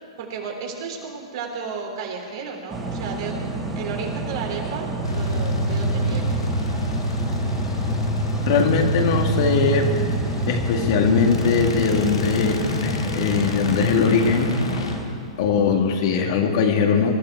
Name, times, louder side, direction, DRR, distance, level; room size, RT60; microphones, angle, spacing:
voice 1, 0.2-6.4, right 5 dB, 55° right, 1 dB, 3.4 m, -33 dB
sound 1, 2.7-15.0, right 3 dB, 10° right, 2.6 m, -30 dB
sound 2, 5.0-16.2, equal, 80° left, 1.8 m, -27 dB
voice 2, 8.5-9.9 10.5-14.5 15.4-17.2, left 5 dB, 55° left, 3 dB, 2.0 m, -20 dB
22.0 x 12.5 x 4.7 m, 2.1 s
hypercardioid pair, 110°, 3 cm